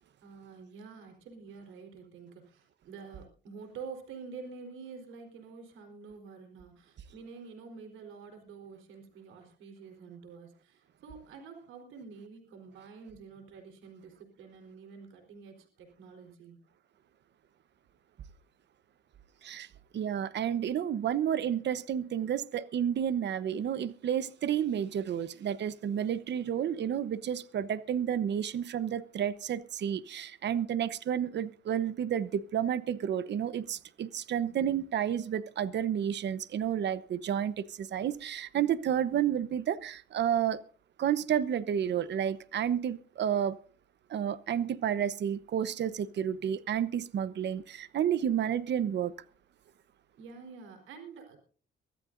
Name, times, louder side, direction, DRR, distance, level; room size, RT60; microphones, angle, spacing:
voice 1, 0.2-16.6 33.7-33.8 34.6-34.7 50.2-51.4, right 5 dB, 90° right, 4.2 m, -48 dB
voice 2, 19.9-40.6 41.0-43.6 44.1-49.1, right 9 dB, 60° right, 1.0 m, -31 dB
24.0 x 14.0 x 2.7 m
cardioid pair, 90°, 20 cm